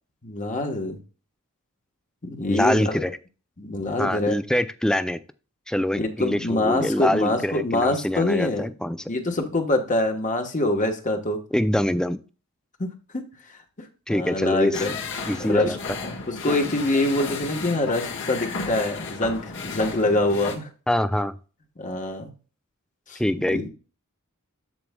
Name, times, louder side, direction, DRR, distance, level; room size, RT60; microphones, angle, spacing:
voice 1, 0.2-1.0 2.2-3.0 3.6-4.3 6.0-8.7 9.1-11.4 12.8-13.2 13.8-14.9 15.5-15.8 16.2-20.7 21.8-22.3 23.1-23.7, left 2 dB, 35° left, 4 dB, 1.2 m, -25 dB
voice 2, 2.5-3.2 4.0-5.2 5.7-9.1 11.5-12.2 14.1-14.8 15.3-15.8 20.9-21.3 23.2-23.6, left 1 dB, 5° left, 13 dB, 0.4 m, -24 dB
sound 1, 14.7-20.5, left 4 dB, 60° left, 1.5 m, -33 dB
13.5 x 4.7 x 2.3 m, 0.35 s
head